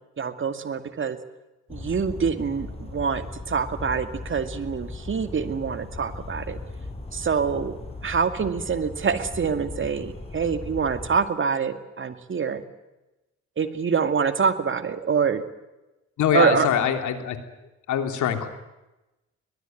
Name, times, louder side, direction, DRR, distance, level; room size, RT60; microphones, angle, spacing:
voice 1, 0.2-1.2 1.7-6.6 7.1-7.8 8.0-12.6 13.6-15.4 16.3-16.7, right 6 dB, 40° right, 8 dB, 2.3 m, -25 dB
Bird vocalization bird call bird song, 1.7-11.2, left 2 dB, 20° left, 5.4 m, -38 dB
voice 2, 16.2-17.4 17.9-18.5, left 9 dB, 75° left, 6 dB, 3.2 m, -23 dB
22.5 x 20.5 x 9.2 m, 1.0 s
cardioid pair, 90°, 30 cm